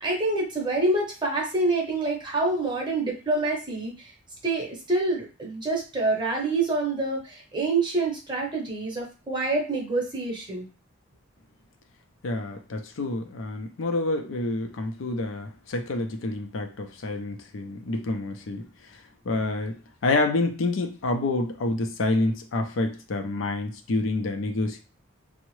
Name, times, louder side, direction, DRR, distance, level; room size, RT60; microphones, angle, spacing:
voice 1, 0.0-4.1 4.4-10.7, right 2 dB, 25° right, 0 dB, 0.8 m, -26 dB
voice 2, 12.2-18.7 19.3-24.8, left 2 dB, 70° left, 5 dB, 0.5 m, -28 dB
3.4 x 2.0 x 3.1 m, 0.34 s
head